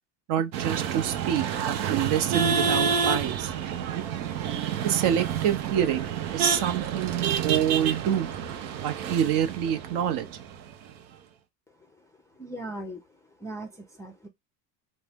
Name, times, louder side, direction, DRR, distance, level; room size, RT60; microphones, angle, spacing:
voice 1, 0.3-3.5 3.9-4.0 4.8-8.3 8.8-10.3, right 9 dB, 55° right, 0.6 m, -27 dB
sound 1, 0.5-10.9, right 7 dB, 90° right, 0.7 m, -29 dB
voice 2, 12.4-13.0 13.4-14.3, right 1 dB, 5° left, 0.4 m, -38 dB
2.6 x 2.0 x 3.4 m
supercardioid pair, 95°, 50 cm